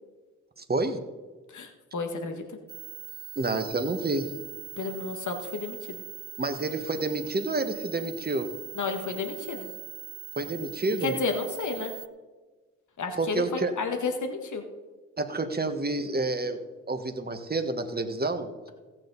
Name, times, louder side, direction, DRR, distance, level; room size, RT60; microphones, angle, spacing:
voice 1, 0.6-1.0 3.3-4.3 6.4-8.5 10.4-11.1 13.2-13.7 15.2-18.5, right 2 dB, 25° right, 7 dB, 1.5 m, -29 dB
voice 2, 1.5-2.6 4.8-6.0 8.7-9.7 11.0-11.9 13.0-14.6, left 4 dB, 60° left, 5 dB, 1.8 m, -32 dB
sound 1, 2.7-12.1, right 11 dB, 55° right, 0.6 m, -42 dB
15.0 x 9.0 x 4.1 m, 1.3 s
supercardioid pair, 45°, 34 cm